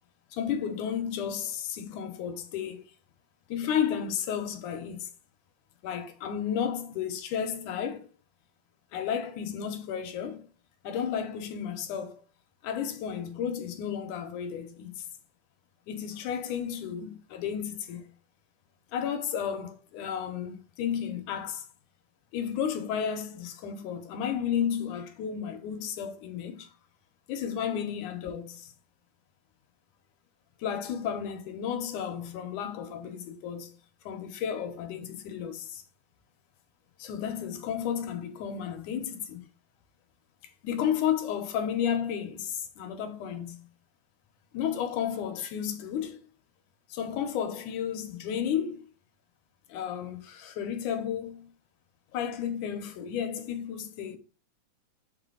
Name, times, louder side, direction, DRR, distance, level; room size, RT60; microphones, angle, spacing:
voice 1, 0.3-2.8 3.5-5.1 5.8-8.1 8.9-10.5 10.8-12.2 12.6-15.1 15.9-18.1 18.9-21.7 22.3-26.7 27.3-28.7 30.6-33.7 34.1-35.8 37.0-39.5 40.6-43.7 44.5-46.2 46.9-48.8 49.7-51.5 52.1-54.2, left 8 dB, 85° left, 2.5 m, -32 dB
7.2 x 4.9 x 3.9 m
omnidirectional pair, 3.6 m